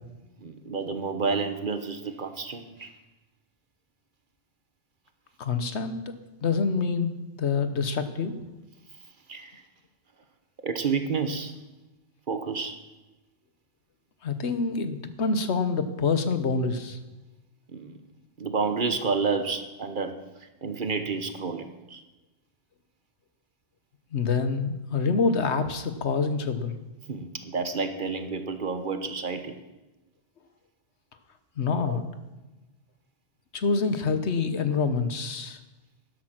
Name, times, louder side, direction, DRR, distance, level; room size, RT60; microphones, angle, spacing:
voice 1, 0.4-2.9 9.3-9.6 10.6-11.5 12.3-12.8 17.7-17.9 18.4-22.0 27.1-29.6 31.8-32.0, right 4 dB, 50° right, 8 dB, 1.2 m, -30 dB
voice 2, 5.4-6.1 6.4-8.4 14.2-17.0 24.1-26.7 31.6-32.0 33.5-35.6, left 4 dB, 85° left, 10 dB, 1.4 m, -26 dB
13.0 x 11.0 x 6.0 m, 1.1 s
omnidirectional pair, 1.1 m